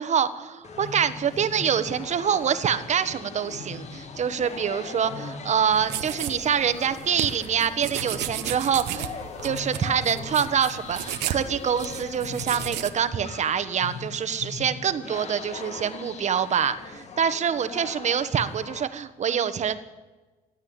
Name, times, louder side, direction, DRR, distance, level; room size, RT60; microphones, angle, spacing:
voice 1, 0.0-9.2 9.4-19.8, right 7 dB, 45° right, 11 dB, 1.2 m, -25 dB
sound 1, 0.6-18.8, left 4 dB, 40° left, 1.6 m, -40 dB
sound 2, 5.7-12.9, right 12 dB, 85° right, 1.1 m, -34 dB
16.0 x 9.9 x 8.7 m, 1.2 s
cardioid pair, 110°, 17 cm